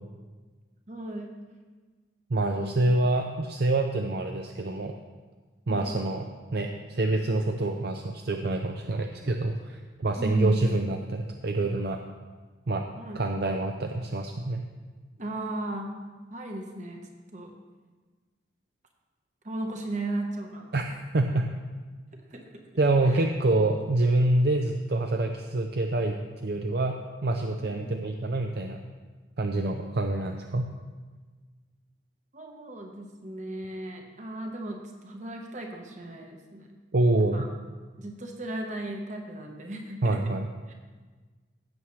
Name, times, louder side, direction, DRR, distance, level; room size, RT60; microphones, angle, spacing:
voice 1, 0.9-1.3 2.6-2.8 5.7-5.9 10.2-10.5 13.0-13.2 15.2-15.9 16.3-17.5 19.4-20.7 22.3-22.6 23.1-23.2 27.6-27.8 32.3-34.8 35.0-36.7 37.2-37.5 38.0-40.2 40.7-40.8, right 1 dB, 40° right, 2 dB, 1.2 m, -36 dB
voice 2, 2.3-5.0 5.7-12.0 12.7-12.9 13.1-14.6 20.7-20.8 21.1-21.5 22.8-28.8 29.4-30.7 36.9-37.4 40.0-40.5, right 2 dB, 55° right, 4 dB, 0.5 m, -26 dB
16.0 x 7.0 x 3.2 m, 1.4 s
head